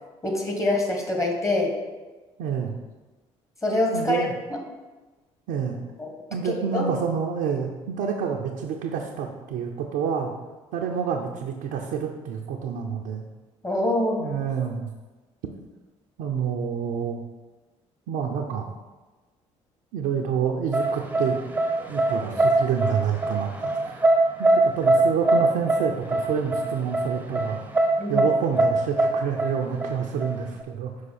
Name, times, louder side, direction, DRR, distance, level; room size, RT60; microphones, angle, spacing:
voice 1, 0.2-1.8 3.6-4.6 6.0-6.1 6.4-6.9 13.6-14.4 28.0-28.3, left 2 dB, 20° left, 1 dB, 1.7 m, -25 dB
voice 2, 2.4-2.8 3.9-4.3 5.5-5.8 6.3-10.3 10.7-13.3 14.2-14.9 16.2-17.2 18.1-18.7 19.9-21.4 21.9-24.0 24.6-27.6 28.1-30.9, right 7 dB, 75° right, -1 dB, 0.6 m, -28 dB
sound 1, 20.7-30.6, right 2 dB, 10° right, 0.8 m, -22 dB
5.7 x 4.8 x 4.2 m, 1.2 s
hypercardioid pair, 55°, 15 cm